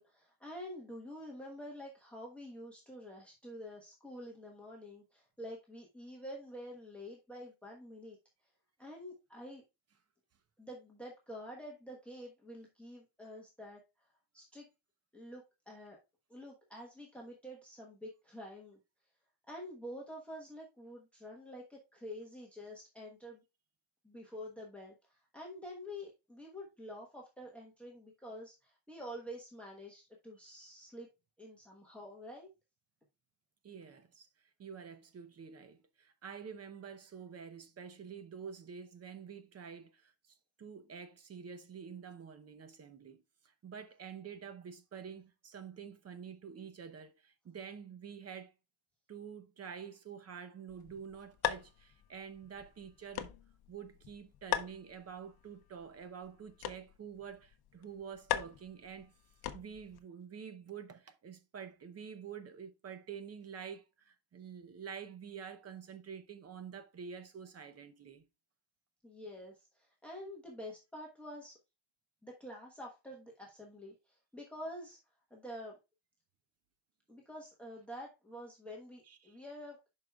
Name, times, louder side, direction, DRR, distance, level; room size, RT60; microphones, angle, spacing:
voice 1, 0.0-8.2 8.8-9.6 10.6-13.8 14.3-14.7 15.1-16.0 16.3-18.8 19.5-23.4 24.0-31.1 31.4-32.5 69.0-71.6 72.2-75.0 75.3-75.8 77.1-79.8, equal, 5° left, 1.1 m, -48 dB
voice 2, 33.6-34.3 34.6-48.5 49.1-53.3 53.7-59.1 59.5-68.3 79.1-79.4, right 7 dB, 35° right, 0.7 m, -48 dB
sound 1, 50.7-60.0, left 11 dB, 50° left, 0.7 m, -42 dB
11.0 x 4.8 x 2.3 m
cardioid pair, 155°, 46 cm